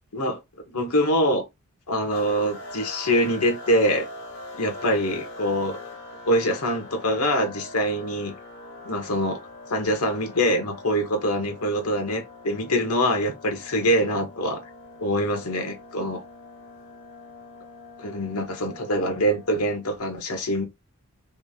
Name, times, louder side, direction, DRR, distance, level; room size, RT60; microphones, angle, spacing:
voice 1, 0.7-1.4 1.9-4.1 4.6-5.8 6.2-8.3 8.8-9.4 9.7-14.6 15.0-16.2 18.0-20.7, equal, 90° left, 1.4 m, -24 dB
sound 1, 2.1-20.0, left 2 dB, 55° left, 1.9 m, -43 dB
3.6 x 3.3 x 3.6 m
head